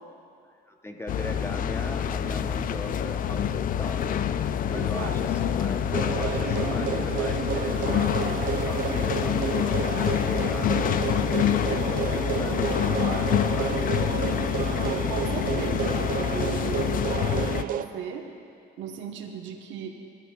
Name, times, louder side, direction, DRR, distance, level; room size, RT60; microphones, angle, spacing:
voice 1, 0.7-4.2 4.7-5.8 6.1-10.8 11.3-14.4, left 1 dB, 10° left, 4 dB, 0.8 m, -39 dB
sound 1, 1.1-17.6, left 9 dB, 45° left, 0.4 m, -27 dB
voice 2, 4.7-5.2 14.7-18.3 18.8-19.9, right 7 dB, 70° right, 3 dB, 1.0 m, -37 dB
sound 2, 5.9-17.9, right 9 dB, 45° right, 0.4 m, -31 dB
14.5 x 12.5 x 2.3 m, 2.5 s
supercardioid pair, 85°, 20 cm